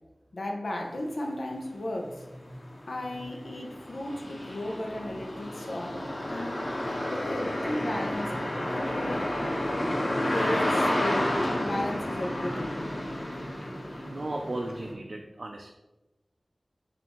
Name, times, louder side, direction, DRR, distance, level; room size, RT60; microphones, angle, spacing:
voice 1, 0.3-2.2 2.9-6.0 6.3-6.6 6.8-8.4 8.7-9.3 10.3-12.9, left 1 dB, 85° left, 1 dB, 0.6 m, -34 dB
sound 1, 1.5-1.6 2.1-14.9, left 1 dB, 55° left, 1.1 m, -31 dB
voice 2, 13.9-15.7, right 2 dB, 60° right, 2 dB, 0.3 m, -36 dB
7.0 x 2.5 x 2.9 m, 1.0 s
wide cardioid pair, 60°, 0 cm